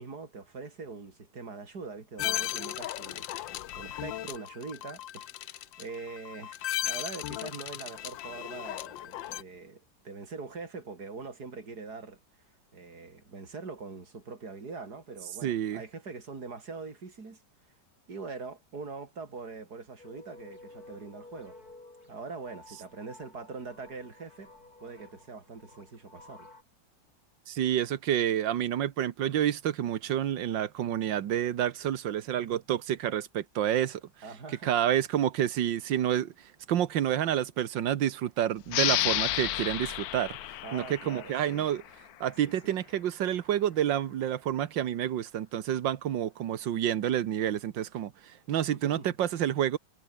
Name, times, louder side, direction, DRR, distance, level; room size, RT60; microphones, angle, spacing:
voice 1, 0.0-12.2 12.7-17.4 18.1-21.6 22.1-24.5 24.8-26.5 34.2-34.7 40.6-41.7 42.4-42.7 48.7-49.1, right 4 dB, 60° right, 3.9 m, -43 dB
sound 1, 2.2-9.4, left 13 dB, 85° left, 1.6 m, -36 dB
voice 2, 15.4-15.8 27.5-34.0 34.6-36.3 36.7-40.4 40.7-41.8 42.2-48.1 48.5-49.8, right 11 dB, 80° right, 1.8 m, -29 dB
sound 2, 20.0-26.6, left 2 dB, 50° left, 6.2 m, -53 dB
sound 3, 38.7-41.9, left 14 dB, 70° left, 0.9 m, -31 dB
omnidirectional pair, 2.0 m